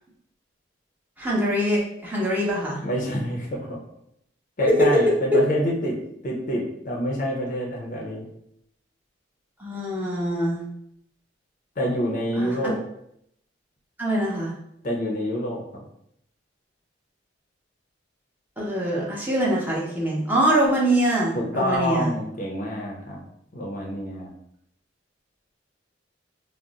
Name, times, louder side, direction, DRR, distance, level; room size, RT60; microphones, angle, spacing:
voice 1, 1.2-2.8 5.3-5.4 9.6-10.6 12.4-12.5 14.0-14.5 18.6-22.1, right 1 dB, 10° right, -5 dB, 0.6 m, -23 dB
voice 2, 2.8-3.8 4.6-6.0 6.2-8.3 11.8-12.8 14.8-15.8 21.3-23.2 23.5-24.3, equal, 40° left, -2 dB, 0.5 m, -27 dB
2.4 x 2.0 x 3.9 m, 0.74 s
head